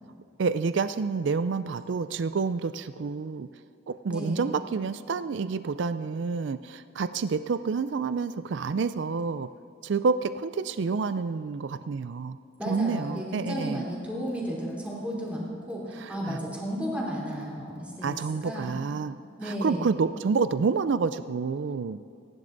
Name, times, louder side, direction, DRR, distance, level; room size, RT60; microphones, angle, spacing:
voice 1, 0.4-3.5 3.9-9.5 9.8-12.4 12.7-13.8 16.0-16.4 18.0-19.2 19.4-22.0, right 5 dB, 60° right, 13 dB, 0.4 m, -28 dB
voice 2, 4.1-4.5 12.6-18.8 19.4-19.9, equal, 5° right, -4 dB, 3.4 m, -33 dB
26.0 x 11.0 x 4.0 m, 2.5 s
head